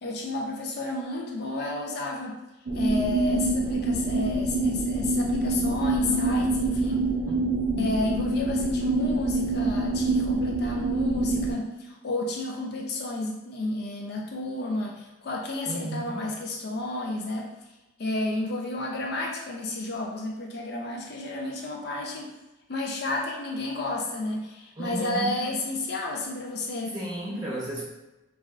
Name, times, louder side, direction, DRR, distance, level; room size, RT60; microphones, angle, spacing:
voice 1, 0.0-2.4 2.7-7.1 7.8-17.5 18.0-22.3 22.7-27.0, left 2 dB, 55° left, 0 dB, 0.4 m, -31 dB
sound 1, 2.7-11.5, right 2 dB, 85° right, 0.6 m, -26 dB
voice 2, 15.7-16.3 24.8-25.4 26.9-27.8, right 1 dB, 20° right, -6 dB, 0.8 m, -33 dB
3.2 x 2.4 x 2.4 m, 1.0 s
head